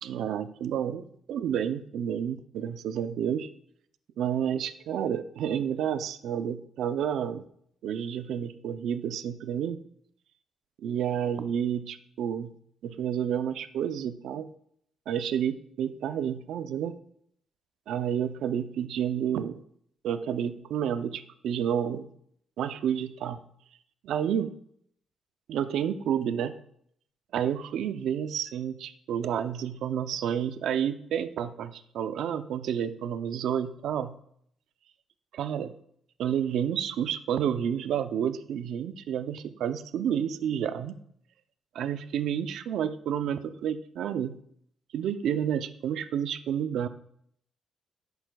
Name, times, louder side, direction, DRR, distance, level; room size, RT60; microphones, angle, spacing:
voice 1, 0.0-3.5 4.2-7.4 7.8-9.8 10.8-12.5 12.8-14.5 15.1-17.0 17.9-19.6 20.0-22.1 22.6-23.4 24.0-24.5 25.5-26.6 27.3-34.2 35.3-35.7 36.2-41.0 41.7-44.4 44.9-46.9, right 9 dB, 75° right, 12 dB, 0.4 m, -30 dB
10.5 x 7.9 x 2.3 m, 0.68 s
cardioid pair, 150°, 0 cm